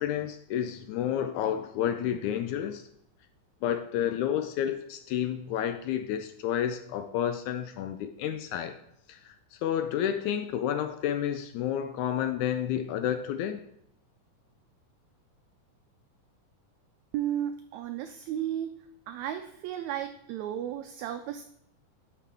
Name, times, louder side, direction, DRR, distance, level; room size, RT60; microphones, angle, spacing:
voice 1, 0.0-2.8 3.6-8.8 9.1-9.4 9.6-13.6, left 10 dB, 80° left, 1.8 m, -30 dB
voice 2, 17.1-18.7 19.1-21.4, right 11 dB, 85° right, 1.6 m, -34 dB
12.0 x 5.9 x 3.5 m
omnidirectional pair, 3.7 m